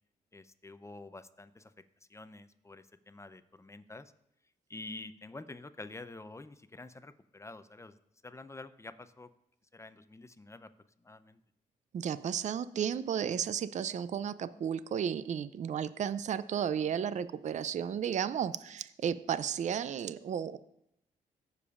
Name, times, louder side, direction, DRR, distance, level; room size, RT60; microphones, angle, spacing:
voice 1, 0.3-1.7 2.1-4.1 4.7-8.0 8.2-9.3 9.7-10.7 11.0-11.4, left 2 dB, 20° left, 12 dB, 0.6 m, -48 dB
voice 2, 11.9-20.6, right 8 dB, 50° right, 15 dB, 0.5 m, -33 dB
16.0 x 6.9 x 2.5 m, 0.78 s
supercardioid pair, 60°, 15 cm